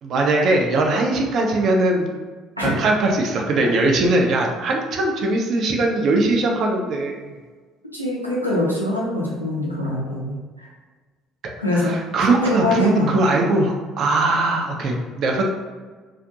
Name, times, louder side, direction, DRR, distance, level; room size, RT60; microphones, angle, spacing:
voice 1, 0.0-2.1 2.6-7.2 11.7-15.5, right 2 dB, 50° right, 1 dB, 0.4 m, -20 dB
voice 2, 7.9-10.7 11.6-11.9 12.2-13.2, left 1 dB, 90° left, -5 dB, 0.5 m, -24 dB
2.4 x 2.3 x 2.6 m, 1.4 s
figure-of-eight pair, 50°, 0 cm